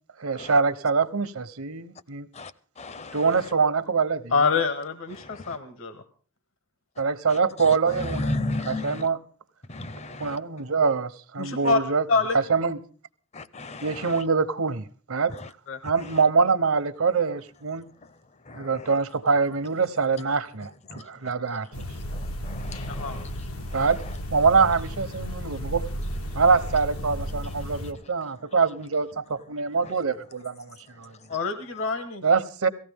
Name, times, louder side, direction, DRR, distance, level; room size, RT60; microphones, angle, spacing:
voice 1, 0.2-2.3 3.1-4.4 7.0-9.2 10.2-12.0 12.3-12.8 13.8-15.3 15.8-17.9 18.5-21.8 23.7-24.0 24.3-25.8 26.3-31.1 32.2-32.7, right 5 dB, 80° right, 1.0 m, -24 dB
voice 2, 2.8-3.2 5.2-5.4 8.1-9.0 9.7-10.4 13.3-14.0 18.5-18.6 20.9-21.0 22.1-23.3 23.7-23.8, left 2 dB, 30° left, 0.6 m, -34 dB
voice 3, 4.3-6.0 11.4-11.8 12.1-12.4 15.7-15.8 22.9-23.2 31.3-32.2, left 4 dB, 65° left, 1.4 m, -25 dB
sound 1, 21.7-27.9, equal, 90° left, 1.5 m, -34 dB
18.0 x 15.0 x 3.5 m
head